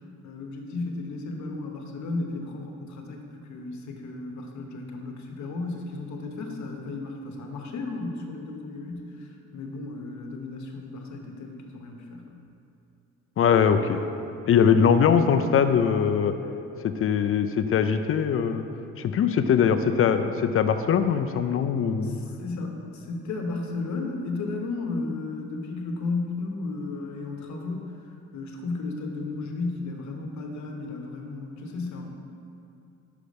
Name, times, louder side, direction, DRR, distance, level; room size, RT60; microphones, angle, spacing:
voice 1, 0.2-12.4 22.0-27.9 28.3-32.1, left 3 dB, 70° left, 2 dB, 1.0 m, -34 dB
voice 2, 13.4-14.0 14.5-16.3 16.8-18.6 19.0-22.2, left 7 dB, 45° left, 9 dB, 0.4 m, -21 dB
5.7 x 4.9 x 5.2 m, 2.6 s
cardioid pair, 90°, 30 cm